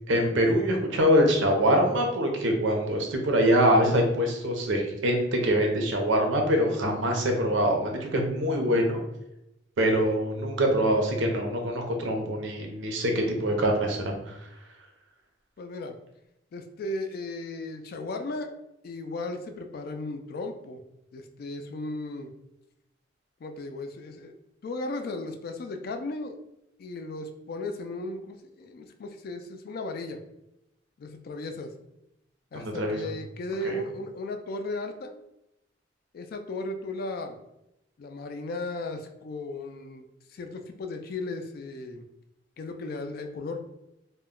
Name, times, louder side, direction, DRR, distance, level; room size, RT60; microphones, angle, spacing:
voice 1, 0.0-9.0 9.8-14.4 32.5-33.0 33.6-33.8, equal, 85° right, 3 dB, 0.6 m, -24 dB
voice 2, 15.6-16.0 16.5-18.5 18.8-20.8 21.1-22.3 23.4-24.3 24.6-26.4 26.8-30.2 31.0-31.7 32.5-35.1 36.1-37.4 38.0-42.0 42.6-43.6, left 2 dB, 55° left, 5 dB, 0.3 m, -36 dB
2.2 x 2.1 x 3.6 m, 0.87 s
head